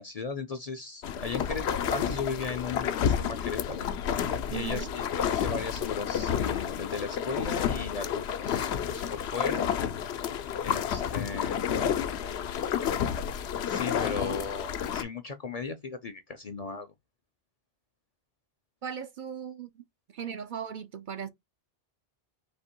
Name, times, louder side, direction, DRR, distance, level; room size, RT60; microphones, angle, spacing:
voice 1, 0.0-3.9 4.5-9.7 10.6-11.7 13.6-16.9, left 4 dB, 45° left, 0.5 m, -37 dB
sound 1, 1.0-15.0, left 8 dB, 80° left, 0.9 m, -30 dB
voice 2, 4.5-4.9 18.8-19.8 20.1-21.3, right 7 dB, 55° right, 0.6 m, -37 dB
4.0 x 2.9 x 4.4 m
omnidirectional pair, 1.1 m